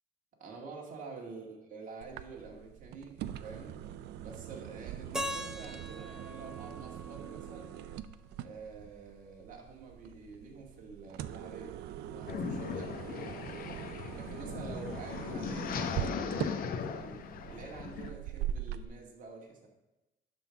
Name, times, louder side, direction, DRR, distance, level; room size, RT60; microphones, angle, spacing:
voice 1, 0.4-3.7 4.2-7.7 8.4-13.7 14.1-19.7, right 4 dB, 50° right, -1 dB, 2.2 m, -48 dB
sound 1, 2.0-18.8, right 11 dB, 80° right, 0.5 m, -42 dB
Keyboard (musical), 5.1-8.1, equal, 5° right, 0.8 m, -41 dB
sound 2, 12.3-18.1, left 6 dB, 60° left, 0.9 m, -38 dB
11.5 x 3.9 x 7.1 m, 1.0 s
cardioid pair, 110°, 17 cm